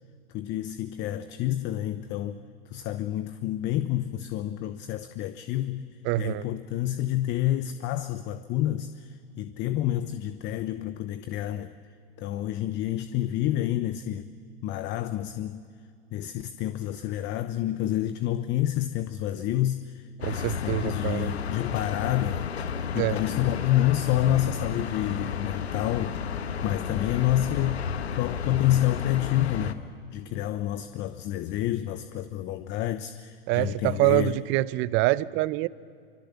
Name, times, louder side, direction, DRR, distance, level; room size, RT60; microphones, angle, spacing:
voice 1, 0.3-2.4 2.7-11.7 12.2-14.3 14.6-15.7 16.1-26.2 26.6-27.8 28.1-29.9 30.1-34.4, left 13 dB, 35° left, 0.9 m, -28 dB
voice 2, 6.0-6.5 20.2-21.3 22.9-23.2 33.5-35.7, right 18 dB, 40° right, 0.7 m, -25 dB
sound 1, 20.2-29.7, left 7 dB, 85° left, 1.3 m, -32 dB
26.0 x 25.0 x 7.0 m
hypercardioid pair, 110°, 31 cm